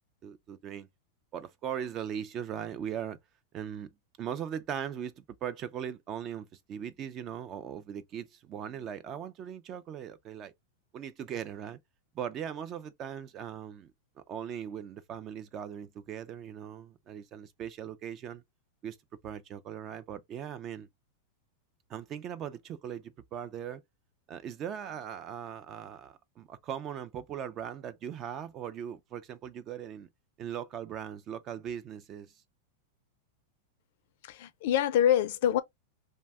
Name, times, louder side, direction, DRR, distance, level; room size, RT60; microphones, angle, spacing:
voice 1, 0.2-0.9 1.3-3.2 3.5-3.9 4.2-10.5 10.9-11.8 12.1-13.9 14.3-18.4 18.8-19.0 19.2-20.9 21.9-23.8 24.3-30.1 30.4-32.3, right 9 dB, 30° right, 0.3 m, -39 dB
voice 2, 34.2-35.6, left 10 dB, 60° left, 0.4 m, -25 dB
2.6 x 2.1 x 3.4 m
supercardioid pair, 150°, 0 cm